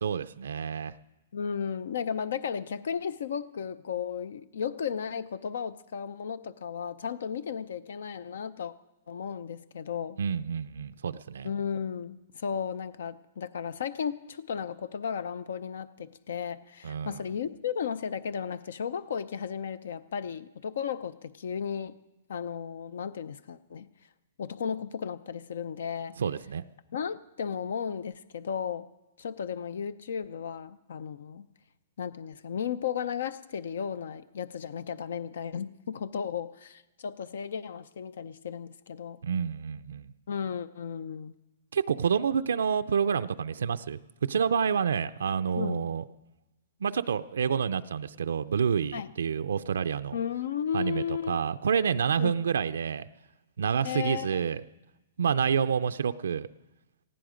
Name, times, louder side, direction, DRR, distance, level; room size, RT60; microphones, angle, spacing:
voice 1, 0.0-1.0 10.2-11.5 16.8-17.2 26.2-26.6 39.2-40.1 41.7-46.0 46.8-50.2 50.7-53.0 53.6-54.6 55.2-56.5, right 7 dB, 90° right, 10 dB, 0.5 m, -28 dB
voice 2, 1.3-8.7 9.1-10.2 11.4-22.0 22.3-23.9 24.4-26.1 26.9-28.9 29.2-31.5 32.0-39.2 40.3-41.3 45.6-45.8 48.9-49.1 50.1-51.4 52.2-52.3 53.8-54.4, left 7 dB, 75° left, 16 dB, 0.6 m, -34 dB
19.0 x 15.0 x 5.1 m, 1.0 s
hypercardioid pair, 155°, 0 cm